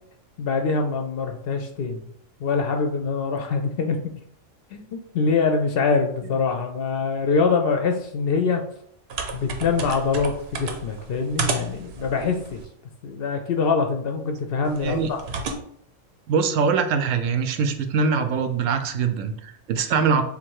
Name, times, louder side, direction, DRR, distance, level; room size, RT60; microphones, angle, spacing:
voice 1, 0.4-2.1 2.4-4.1 4.7-8.6 9.3-12.6 13.0-15.2, left 4 dB, 60° left, 4 dB, 0.7 m, -24 dB
sound 1, 9.1-12.7 14.7-15.6, right 4 dB, 60° right, 0.8 m, -32 dB
voice 2, 16.3-20.2, right 5 dB, 90° right, 8 dB, 0.9 m, -23 dB
3.6 x 2.6 x 4.5 m, 0.66 s
omnidirectional pair, 1.3 m